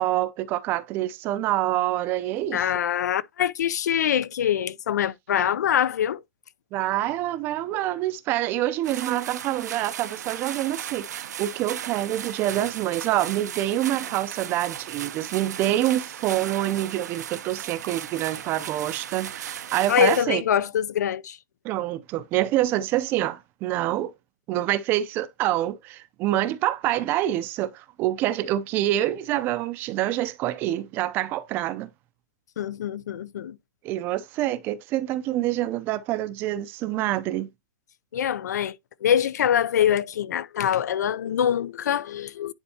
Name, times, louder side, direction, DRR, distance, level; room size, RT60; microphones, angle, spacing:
voice 1, 0.0-2.6 5.4-5.5 6.7-20.4 21.6-24.1 24.5-31.9 33.8-37.5, right 14 dB, 25° right, 0.5 m, -26 dB
voice 2, 2.5-6.2 19.9-21.4 32.6-33.6 38.1-38.8 39.0-42.5, left 9 dB, 80° left, 0.5 m, -24 dB
sound 1, 8.8-20.3, right 9 dB, 80° right, 0.7 m, -36 dB
9.7 x 4.4 x 2.8 m
hypercardioid pair, 160°, 9 cm